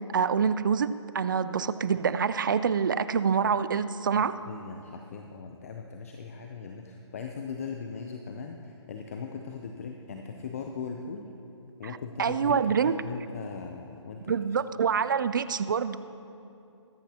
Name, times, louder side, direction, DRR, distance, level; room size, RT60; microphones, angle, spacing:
voice 1, 0.1-0.9 1.1-4.3 12.2-13.0 14.3-16.0, right 6 dB, 40° right, 14 dB, 0.4 m, -26 dB
voice 2, 4.1-11.3 11.8-14.3, left 5 dB, 30° left, 4 dB, 0.6 m, -39 dB
22.0 x 10.0 x 2.9 m, 2.7 s
hypercardioid pair, 160°, 16 cm